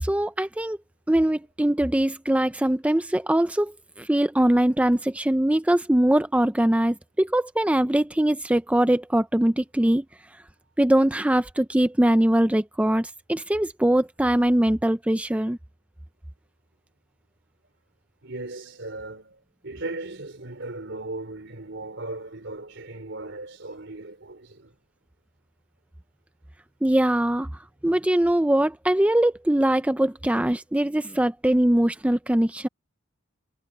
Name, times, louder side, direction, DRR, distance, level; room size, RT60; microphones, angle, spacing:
voice 1, 0.0-0.8 1.1-10.0 10.8-15.6 26.8-27.5 27.8-32.7, right 1 dB, 5° right, 0.4 m, -22 dB
voice 2, 18.2-24.7, right 2 dB, 65° right, 4.1 m, -37 dB
head